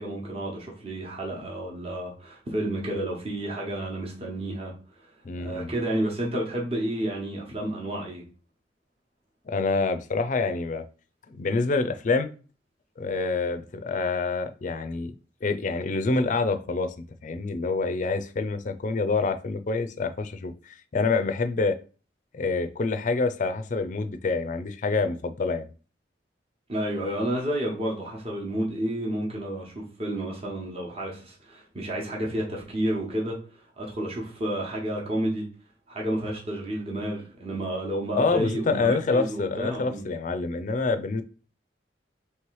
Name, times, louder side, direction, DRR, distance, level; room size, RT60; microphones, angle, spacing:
voice 1, 0.0-4.7 5.4-8.2 26.7-33.4 33.8-35.5 35.9-40.1, right 1 dB, 35° right, 1.0 m, -30 dB
voice 2, 5.3-5.7 9.5-10.8 11.3-12.3 13.0-15.1 15.4-21.8 22.3-25.7 38.2-41.2, left 3 dB, 45° left, 0.4 m, -27 dB
3.2 x 3.1 x 4.7 m
head